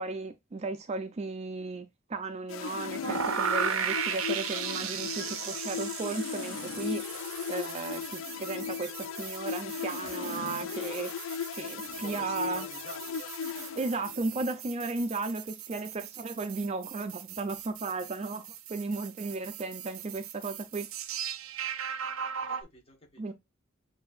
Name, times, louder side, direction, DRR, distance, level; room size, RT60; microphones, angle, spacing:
voice 1, 0.0-7.0 7.5-11.2 11.5-12.7 13.8-20.9 23.2-23.3, right 3 dB, 30° right, 0.4 m, -35 dB
sound 1, 2.5-14.4, left 7 dB, 65° left, 0.4 m, -37 dB
sound 2, 3.0-22.6, right 8 dB, 75° right, 0.5 m, -37 dB
voice 2, 11.8-13.3 22.5-23.2, left 2 dB, 25° left, 1.2 m, -49 dB
6.9 x 2.7 x 2.4 m
head